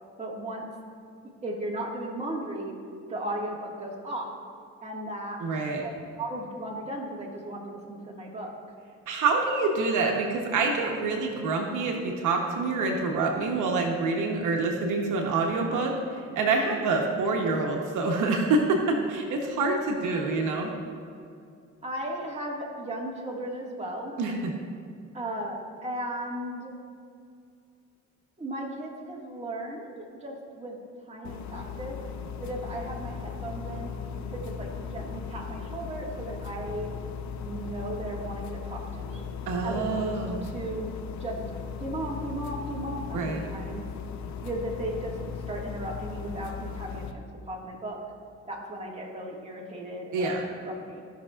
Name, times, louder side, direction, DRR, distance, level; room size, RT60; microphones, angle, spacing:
voice 1, 0.2-0.7 1.4-2.7 3.1-4.3 4.8-5.4 5.8-5.9 6.2-8.5 21.8-24.1 25.1-26.7 28.4-32.0 32.4-33.9 34.3-36.9 37.4-39.2 39.6-40.9 41.2-41.4 41.8-43.9 44.4-45.2 45.5-48.0 48.5-51.0, right 1 dB, 20° right, -3 dB, 1.9 m, -36 dB
voice 2, 5.4-5.8 9.1-15.9 16.3-20.7 24.2-24.5 39.5-40.4 43.1-43.4 50.1-50.4, right 3 dB, 80° right, 1 dB, 1.0 m, -26 dB
sound 1, 31.2-47.1, left 6 dB, 70° left, 0.7 m, -37 dB
16.5 x 6.0 x 2.4 m, 2.4 s
cardioid pair, 90°, 30 cm